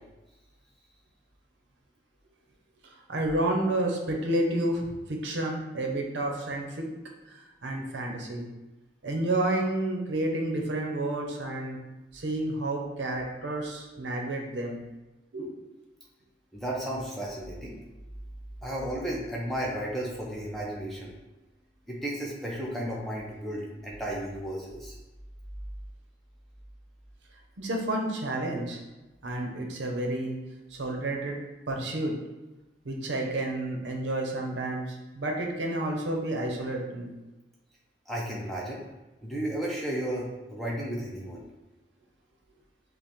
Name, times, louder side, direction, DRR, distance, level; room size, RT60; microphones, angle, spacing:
voice 1, 2.8-6.9 7.3-8.5 9.0-11.8 12.1-14.8 15.3-15.5 27.6-28.8 29.2-30.4 30.7-31.4 31.7-32.1 32.8-37.1, right 1 dB, 70° right, 1 dB, 0.6 m, -30 dB
voice 2, 16.5-17.8 18.6-21.1 21.9-24.9 38.1-38.8 39.2-41.4, right 1 dB, ahead, -4 dB, 0.5 m, -33 dB
5.1 x 2.1 x 2.9 m, 1.1 s
head